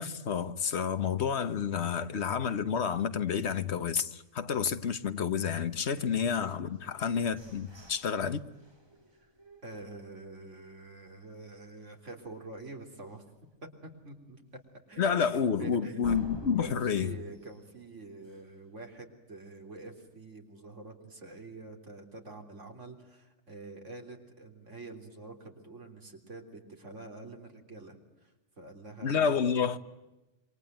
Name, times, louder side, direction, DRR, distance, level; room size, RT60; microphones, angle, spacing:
voice 1, 0.0-8.4 15.0-17.1 29.0-29.8, left 7 dB, 65° left, 1.4 m, -29 dB
sound 1, 6.7-10.6 11.1-11.2 11.6-12.0 12.3-12.4 12.9-13.0 16.0-18.7, right 1 dB, 20° right, 3.2 m, -50 dB
voice 2, 9.6-13.2 13.6-14.4 14.9-16.2 16.6-29.4, right 2 dB, 80° right, 3.9 m, -47 dB
27.5 x 23.5 x 9.2 m
omnidirectional pair, 1.2 m